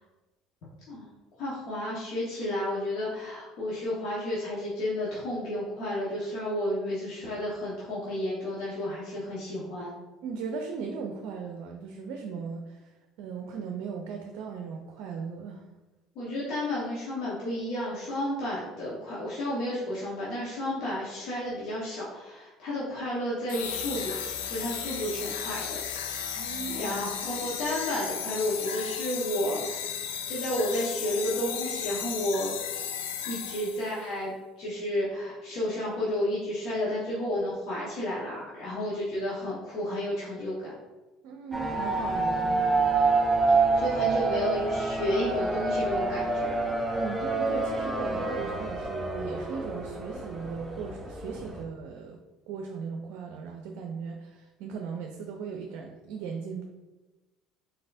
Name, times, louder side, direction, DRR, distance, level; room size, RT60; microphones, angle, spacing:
voice 1, 1.4-9.9 16.1-24.1 24.5-25.8 26.1-26.5 26.7-29.9 30.3-32.5 33.2-40.5 43.8-46.7, left 1 dB, 70° left, -8 dB, 1.3 m, -32 dB
voice 2, 10.2-12.9 13.2-15.6 26.4-26.9 41.2-42.9 46.9-52.2 52.5-56.6, right 5 dB, 70° right, 3 dB, 0.4 m, -37 dB
sound 1, 23.5-34.0, left 8 dB, 90° left, 0.4 m, -35 dB
sound 2, 41.5-51.6, right 3 dB, 15° right, 0.8 m, -27 dB
4.0 x 3.9 x 2.6 m, 1.1 s
supercardioid pair, 80°, 0 cm